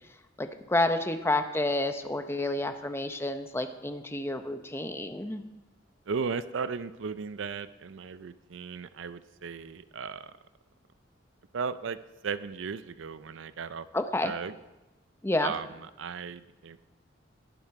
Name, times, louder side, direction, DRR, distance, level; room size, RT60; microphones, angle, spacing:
voice 1, 0.4-5.4 13.9-14.3 15.2-15.5, left 2 dB, 15° left, 8 dB, 0.7 m, -29 dB
voice 2, 6.1-10.3 11.5-12.0 12.2-13.9 14.2-14.5 15.4-15.7 16.0-16.8, right 5 dB, 75° right, 14 dB, 0.5 m, -36 dB
20.5 x 7.4 x 4.7 m, 1.0 s
head